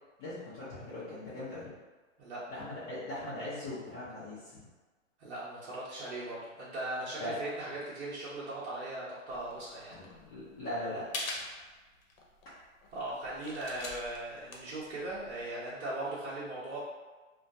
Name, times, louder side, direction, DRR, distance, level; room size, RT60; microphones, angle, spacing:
voice 1, 0.2-1.7 2.5-4.6 7.2-7.4 9.9-11.5, left 1 dB, 25° left, -12 dB, 0.6 m, -40 dB
voice 2, 5.2-10.0 12.9-16.8, right 1 dB, 55° right, -9 dB, 0.8 m, -39 dB
sound 1, 9.3-15.7, left 3 dB, 90° left, 0.7 m, -45 dB
2.2 x 2.2 x 2.6 m, 1.3 s
hypercardioid pair, 145°, 40 cm